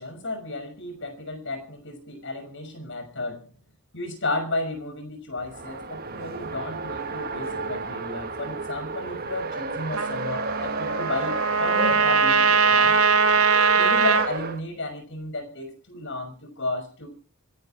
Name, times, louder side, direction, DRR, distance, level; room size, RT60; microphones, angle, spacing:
voice 1, 0.0-3.5 3.9-13.0 13.8-17.1, left 2 dB, 60° left, 7 dB, 6.0 m, -33 dB
Race car auto racing, 5.4-14.6, right 3 dB, 45° right, 1.5 m, -32 dB
Trumpet, 9.9-14.3, right 5 dB, 80° right, 1.9 m, -21 dB
25.5 x 11.5 x 4.4 m, 0.36 s
head